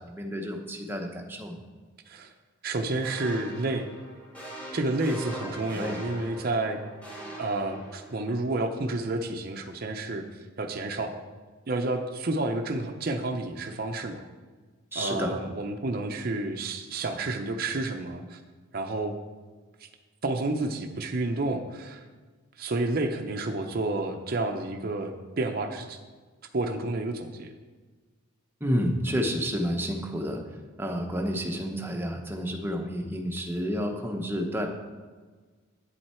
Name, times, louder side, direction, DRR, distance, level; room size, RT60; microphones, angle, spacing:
voice 1, 0.0-1.6 5.3-6.0 14.9-15.4 28.6-30.4 30.8-34.7, equal, 10° right, 2 dB, 0.8 m, -30 dB
voice 2, 2.6-3.9 4.7-6.8 7.4-10.3 10.6-11.2 11.7-14.2 15.0-18.4 18.7-19.1 19.8-19.9 20.2-22.0 22.6-26.0 26.5-27.5, right 2 dB, 45° right, 4 dB, 0.6 m, -30 dB
sound 1, 3.0-8.3, right 1 dB, 5° left, 2.6 m, -41 dB
8.4 x 7.7 x 4.3 m, 1.4 s
head